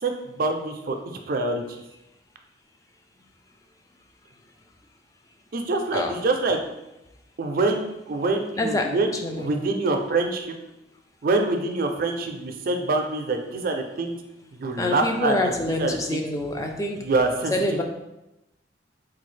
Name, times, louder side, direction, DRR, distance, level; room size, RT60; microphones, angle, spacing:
voice 1, 0.0-1.0 1.3-1.6 5.5-6.6 7.4-10.6 11.2-14.2 14.6-16.2 17.0-17.5, right 3 dB, 50° right, 4 dB, 0.4 m, -25 dB
voice 2, 8.6-9.5 14.8-17.0 17.5-17.8, left 1 dB, 20° left, 3 dB, 0.3 m, -26 dB
3.9 x 2.3 x 3.2 m, 0.92 s
head